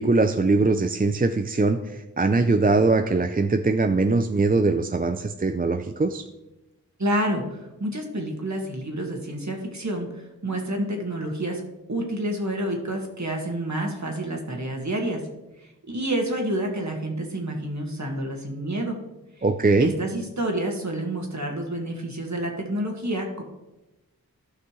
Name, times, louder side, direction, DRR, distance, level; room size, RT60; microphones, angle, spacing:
voice 1, 0.0-1.8 2.2-6.2 19.4-19.9, right 3 dB, 25° right, 7 dB, 0.4 m, -21 dB
voice 2, 7.0-11.6 11.9-15.3 15.6-19.0 19.4-19.5 19.8-23.4, right 1 dB, 55° right, 2 dB, 1.8 m, -29 dB
14.5 x 5.9 x 3.1 m, 1.0 s
wide cardioid pair, 65°, 35 cm